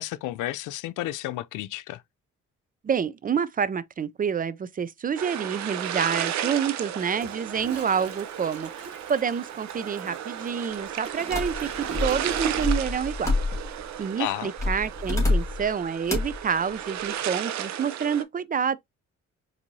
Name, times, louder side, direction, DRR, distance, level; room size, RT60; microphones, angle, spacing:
voice 1, 0.0-2.0 14.2-14.5, left 15 dB, 85° left, 0.5 m, -32 dB
voice 2, 2.8-8.7 9.1-13.3 14.0-18.8, right 7 dB, 30° right, 0.4 m, -28 dB
sound 1, 5.2-18.2, right 10 dB, 65° right, 0.7 m, -34 dB
Toilet flush, 7.0-13.0 13.3-13.5, right 7 dB, 50° right, 1.3 m, -40 dB
sound 2, 11.3-13.9 14.6-15.7 16.1-16.4, left 2 dB, 10° left, 1.7 m, -27 dB
4.4 x 2.7 x 2.7 m
cardioid pair, 90°, 30 cm